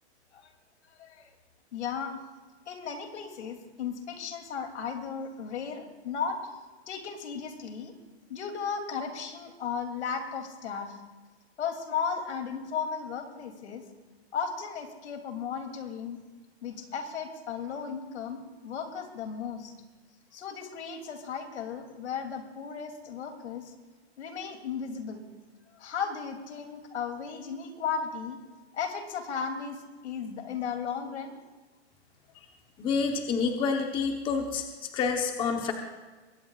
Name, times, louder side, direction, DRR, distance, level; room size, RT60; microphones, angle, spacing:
voice 1, 0.9-1.3 1.7-2.2 2.7-6.4 6.9-7.9 8.3-11.0 11.6-13.8 14.3-16.2 16.6-19.7 20.3-23.7 24.2-25.2 25.7-28.4 28.7-31.3, left 6 dB, 75° left, 5 dB, 2.9 m, -35 dB
voice 2, 32.8-34.6 34.9-35.7, left 5 dB, 15° left, 4 dB, 0.9 m, -28 dB
22.0 x 17.5 x 2.4 m, 1.3 s
hypercardioid pair, 160°, 34 cm